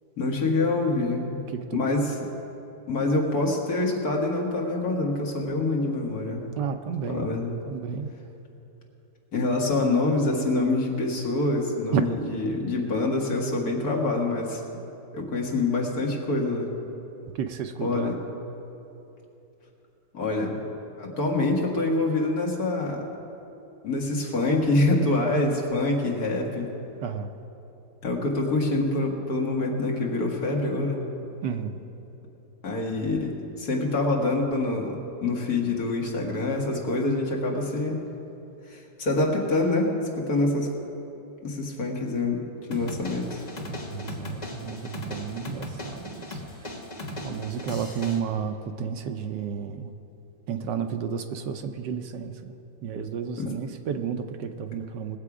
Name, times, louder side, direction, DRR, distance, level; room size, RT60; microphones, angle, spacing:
voice 1, 0.2-1.4 1.7-2.2 2.9-6.6 7.1-7.5 9.3-14.6 15.1-16.8 17.8-18.2 20.1-20.6 21.0-23.0 23.8-26.7 28.0-31.0 32.6-38.0 38.7-40.7 41.4-42.4 42.7-43.4 53.4-53.5, left 2 dB, 55° left, -1 dB, 2.0 m, -26 dB
voice 2, 6.6-7.3 7.7-8.1 11.9-12.0 17.3-18.1 27.0-27.3 31.4-31.8 43.9-46.7 47.2-49.9 50.5-55.2, right 7 dB, 75° right, 7 dB, 1.3 m, -32 dB
sound 1, 42.7-48.2, left 1 dB, 25° left, 1.2 m, -37 dB
20.5 x 7.7 x 4.9 m, 2.9 s
omnidirectional pair, 2.0 m